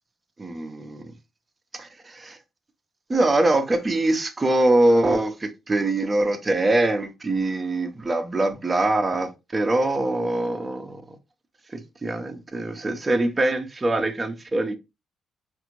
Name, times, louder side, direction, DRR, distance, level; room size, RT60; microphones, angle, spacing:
voice 1, 0.4-1.1 1.7-2.4 3.1-11.2 11.7-14.8, right 2 dB, 25° right, 0.7 m, -23 dB
4.7 x 2.6 x 3.0 m
cardioid pair, 90°, 0 cm